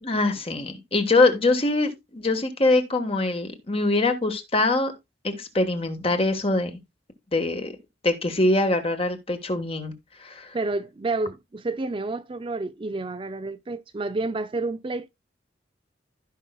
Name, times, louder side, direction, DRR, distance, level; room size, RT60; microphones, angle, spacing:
voice 1, 0.0-4.9 5.2-6.7 7.3-7.7 8.0-9.9 10.2-10.5, left 2 dB, 30° left, 1.4 m, -23 dB
voice 2, 10.5-15.1, right 2 dB, 25° right, 0.4 m, -29 dB
15.5 x 5.5 x 2.3 m
head